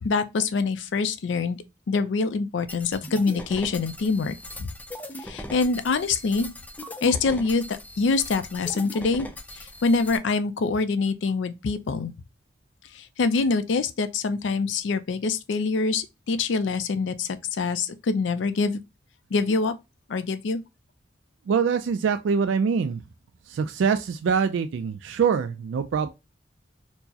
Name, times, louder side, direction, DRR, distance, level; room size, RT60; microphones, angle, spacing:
voice 1, 0.0-1.6 1.9-4.3 5.3-6.5 7.0-9.3 9.8-12.1 13.2-17.3 17.6-18.8 19.3-19.7 20.1-20.6, left 4 dB, 75° left, 0.4 m, -25 dB
sound 1, 2.7-10.2, left 1 dB, 10° left, 0.4 m, -40 dB
voice 2, 21.5-23.0 23.5-26.1, right 6 dB, 85° right, 0.3 m, -24 dB
4.4 x 2.0 x 2.7 m
head